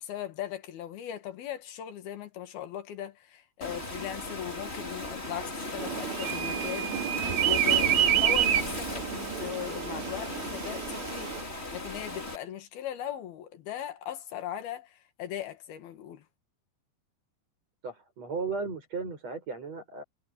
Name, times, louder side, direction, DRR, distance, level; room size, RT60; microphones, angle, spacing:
voice 1, 0.0-6.9 7.4-11.3 11.7-16.2, left 10 dB, 85° left, 3.8 m, -39 dB
Waves surf, 3.6-12.4, left 2 dB, 15° left, 3.8 m, -37 dB
sound 1, 5.8-11.4, right 11 dB, 65° right, 2.0 m, -28 dB
voice 2, 17.8-20.0, right 4 dB, 45° right, 8.8 m, -35 dB
omnidirectional pair, 4.3 m